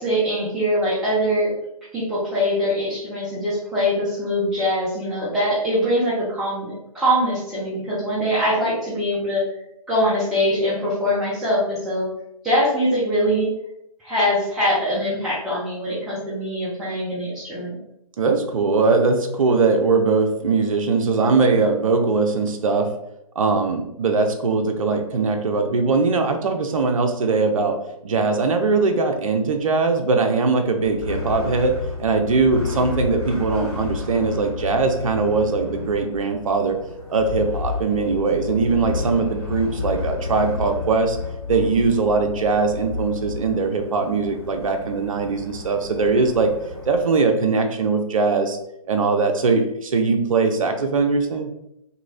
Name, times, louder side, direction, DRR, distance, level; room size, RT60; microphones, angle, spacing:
voice 1, 0.0-1.5 1.9-9.4 9.9-12.1 12.4-13.5 14.0-17.8, equal, ahead, -11 dB, 0.3 m, -22 dB
voice 2, 18.2-22.9 23.4-27.8 28.0-31.7 32.0-36.8 37.1-41.2 41.5-46.5 46.9-48.6 48.9-51.5, right 4 dB, 60° right, 5 dB, 0.5 m, -21 dB
sound 1, 30.8-47.1, left 4 dB, 40° left, 1.4 m, -32 dB
3.0 x 2.6 x 2.4 m, 0.80 s
figure-of-eight pair, 130°, 19 cm